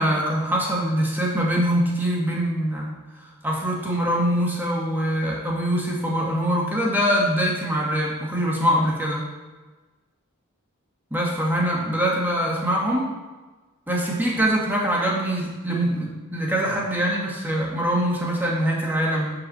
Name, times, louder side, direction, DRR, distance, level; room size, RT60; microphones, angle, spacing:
voice 1, 0.0-2.9 3.4-9.3 11.1-13.1 13.9-19.3, equal, 10° right, -3 dB, 2.1 m, -23 dB
9.6 x 4.8 x 7.0 m, 1.2 s
head